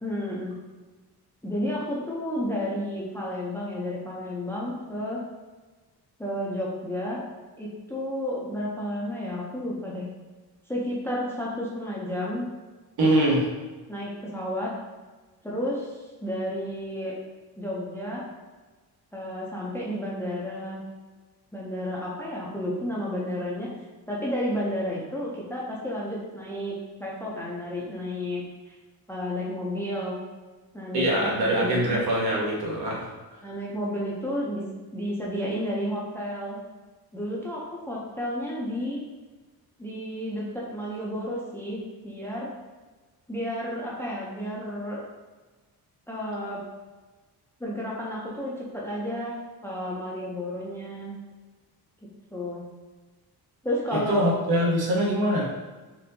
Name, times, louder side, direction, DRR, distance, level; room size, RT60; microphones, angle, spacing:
voice 1, 0.0-0.5 1.4-5.2 6.2-7.2 7.6-10.1 10.7-12.4 13.9-14.7 15.4-15.9 16.2-17.1 17.6-18.2 19.1-20.8 21.5-23.7 24.1-28.4 29.1-30.2 30.7-32.0 33.4-34.6 34.9-36.6 37.1-39.0 39.8-42.5 43.3-45.0 46.1-46.6 47.6-49.4 49.6-51.1 52.3-52.6 53.6-54.3, equal, 5° left, -5 dB, 0.5 m, -31 dB
voice 2, 13.0-13.4 30.9-33.1 53.9-55.5, right 1 dB, 70° right, -3 dB, 1.0 m, -23 dB
4.3 x 2.7 x 2.7 m, 1.3 s
wide cardioid pair, 160°, 39 cm